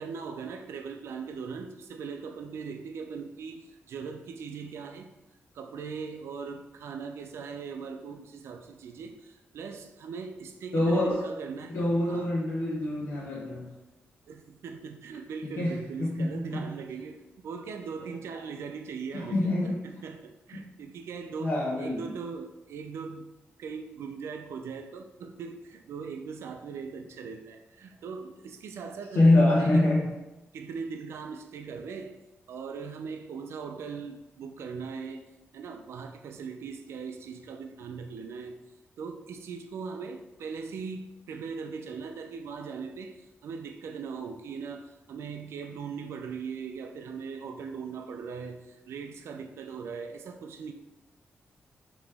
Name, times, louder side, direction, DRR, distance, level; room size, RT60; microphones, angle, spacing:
voice 1, 0.0-5.1 5.5-11.8 12.1-12.3 14.3-23.3 23.6-29.8 30.5-32.2 32.5-35.2 35.5-38.6 39.0-50.7, right 5 dB, 90° right, 5 dB, 0.3 m, -40 dB
voice 2, 10.7-11.2 11.7-13.7 15.4-16.6 19.1-19.8 21.4-22.1 29.1-30.1, left 2 dB, 65° left, -7 dB, 1.0 m, -25 dB
5.1 x 3.0 x 3.4 m, 0.99 s
wide cardioid pair, 170°, 4 cm